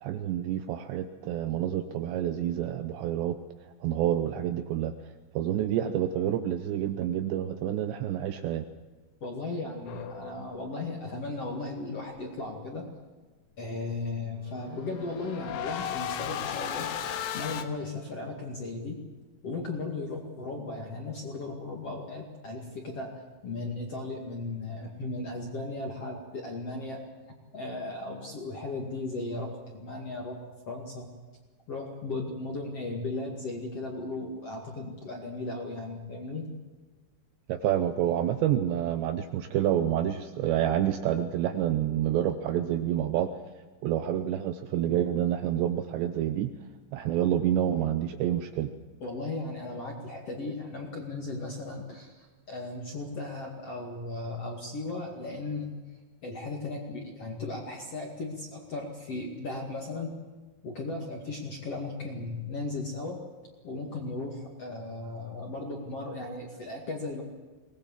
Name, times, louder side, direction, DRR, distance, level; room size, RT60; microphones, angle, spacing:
voice 1, 0.0-3.4 3.8-4.9 5.4-8.7 37.5-43.3 43.8-46.5 46.9-48.7, right 11 dB, 80° right, 9 dB, 2.6 m, -28 dB
voice 2, 9.2-12.9 13.6-16.9 17.3-19.0 19.4-23.1 23.4-27.0 27.5-30.4 30.7-31.1 31.7-36.5 49.0-55.7 56.2-60.2 60.6-63.2 63.6-67.2, left 2 dB, 45° left, 1 dB, 2.1 m, -36 dB
sound 1, 9.9-10.8 14.5-17.6, left 10 dB, 85° left, 3.8 m, -35 dB
22.5 x 19.0 x 7.3 m, 1.3 s
omnidirectional pair, 5.8 m